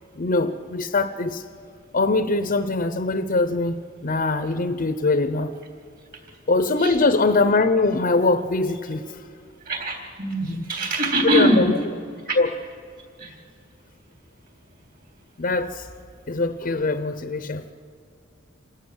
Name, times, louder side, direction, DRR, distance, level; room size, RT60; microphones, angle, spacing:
voice 1, 0.2-1.4 1.9-5.5 6.5-9.0 10.4-10.6 11.2-11.8 12.4-12.5 13.3-13.4 15.4-15.9 16.3-17.7, left 3 dB, 40° left, 10 dB, 0.7 m, -22 dB
voice 2, 9.7-11.7 12.3-12.4 13.2-13.3, right 1 dB, 45° right, 2 dB, 3.8 m, -23 dB
28.0 x 12.5 x 8.0 m, 2.2 s
head